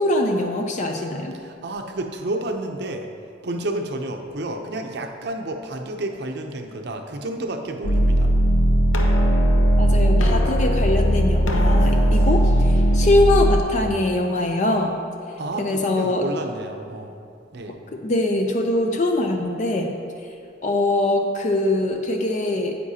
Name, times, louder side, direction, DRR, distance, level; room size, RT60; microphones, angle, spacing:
voice 1, 0.0-1.3 9.8-15.0 15.6-16.3 17.9-19.9 20.6-22.8, left 2 dB, 40° left, 3 dB, 0.5 m, -22 dB
voice 2, 1.4-3.1 3.4-8.3 15.4-17.2 17.5-17.8, right 1 dB, 55° right, 4 dB, 0.6 m, -30 dB
sound 1, 7.8-13.6, equal, 85° left, 0.9 m, -18 dB
9.7 x 8.4 x 2.8 m, 2.5 s
head